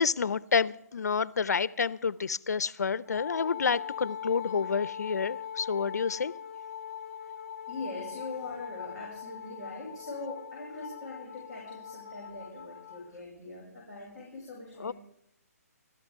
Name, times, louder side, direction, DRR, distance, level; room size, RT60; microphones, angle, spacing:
voice 1, 0.0-6.3 14.8-14.9, left 5 dB, 85° left, 18 dB, 0.7 m, -29 dB
Wind instrument woodwind instrument, 3.1-13.1, left 8 dB, 35° left, 3.1 m, -41 dB
voice 2, 7.7-14.9, left 2 dB, 10° right, -7 dB, 5.8 m, -42 dB
29.0 x 13.0 x 3.7 m, 0.76 s
hypercardioid pair, 170°, 9 cm